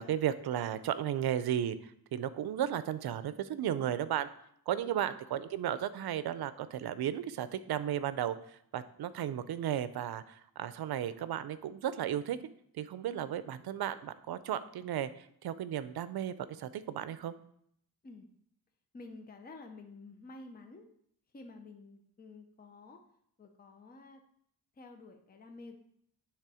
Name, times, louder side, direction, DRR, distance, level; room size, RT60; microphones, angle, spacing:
voice 1, 0.0-4.3 4.7-12.4 12.8-17.3, right 10 dB, 75° right, 14 dB, 0.5 m, -34 dB
voice 2, 18.9-20.9 21.3-23.0 23.4-24.2 24.8-25.8, left 3 dB, 25° left, 5 dB, 0.6 m, -50 dB
9.4 x 3.5 x 4.9 m, 0.69 s
wide cardioid pair, 145°, 38 cm